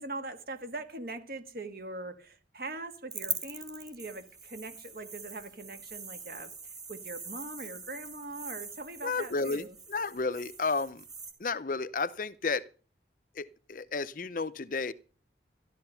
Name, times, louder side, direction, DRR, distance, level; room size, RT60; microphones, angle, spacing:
voice 1, 0.0-6.5 6.9-9.8, right 2 dB, 55° right, 1.7 m, -41 dB
sound 1, 3.1-11.3, right 5 dB, 20° right, 2.1 m, -43 dB
voice 2, 9.0-11.0 11.4-12.7 13.3-14.9, left 4 dB, 45° left, 0.6 m, -32 dB
13.0 x 12.5 x 5.6 m
head